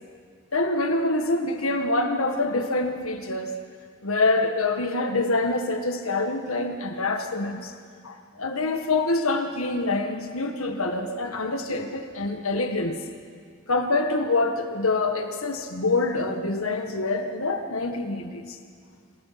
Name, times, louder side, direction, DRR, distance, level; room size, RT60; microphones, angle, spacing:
voice 1, 0.5-3.5 4.0-7.7 8.0-13.0 13.7-18.6, left 2 dB, 75° left, 6 dB, 1.7 m, -26 dB
27.5 x 16.5 x 5.9 m, 2.1 s
head